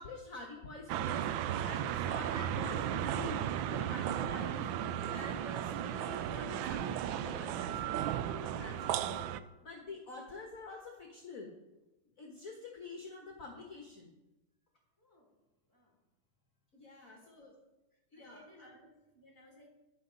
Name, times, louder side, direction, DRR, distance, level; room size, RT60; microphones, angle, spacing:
voice 1, 0.0-4.7 5.1-9.2 9.6-11.5 12.2-14.1 16.7-17.6 18.1-18.7, left 3 dB, 40° left, 1 dB, 1.7 m, -47 dB
sound 1, 0.9-9.4, right 10 dB, 75° right, 1.2 m, -35 dB
voice 2, 15.0-15.3 15.7-15.9 17.1-17.5 18.1-19.7, left 1 dB, 10° left, -2 dB, 2.7 m, -61 dB
12.5 x 10.0 x 4.0 m, 1.0 s
omnidirectional pair, 2.4 m